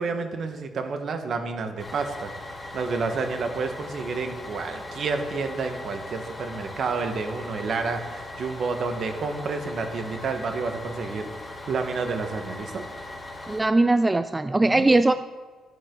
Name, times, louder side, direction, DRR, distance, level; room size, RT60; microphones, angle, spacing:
voice 1, 0.0-2.3 2.7-11.3 11.7-12.8 14.6-14.9, right 4 dB, 60° right, 6 dB, 1.5 m, -30 dB
Bus, 1.8-13.6, left 2 dB, 25° left, 3.2 m, -39 dB
voice 2, 13.5-15.1, right 2 dB, 15° right, 11 dB, 0.4 m, -20 dB
11.5 x 10.0 x 4.0 m, 1.4 s
cardioid pair, 90°, 0 cm